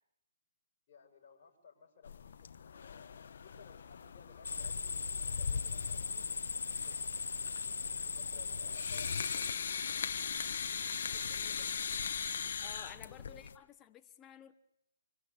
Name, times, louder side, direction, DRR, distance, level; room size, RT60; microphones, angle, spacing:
voice 1, 0.9-6.5 6.9-7.0 7.8-9.7 10.5-11.8 12.8-13.5, left 6 dB, 30° left, 7.3 m, -59 dB
sound 1, 2.0-13.6, left 6 dB, 55° left, 1.3 m, -41 dB
sound 2, 4.4-9.5, left 5 dB, 75° left, 0.9 m, -37 dB
voice 2, 12.6-14.5, left 10 dB, 15° left, 1.1 m, -53 dB
26.0 x 23.5 x 8.4 m
hypercardioid pair, 150°, 0 cm